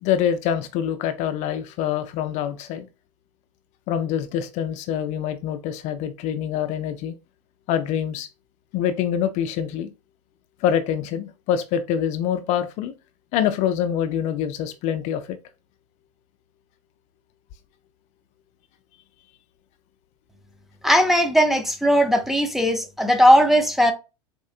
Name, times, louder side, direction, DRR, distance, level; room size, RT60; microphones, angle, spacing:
voice 1, 0.0-2.9 3.9-7.1 7.7-8.3 8.7-9.9 10.6-12.9 13.3-15.4, left 9 dB, 50° left, 0.5 m, -25 dB
voice 2, 20.8-23.9, equal, ahead, 0.5 m, -18 dB
4.2 x 2.6 x 2.4 m
hypercardioid pair, 105°, 16 cm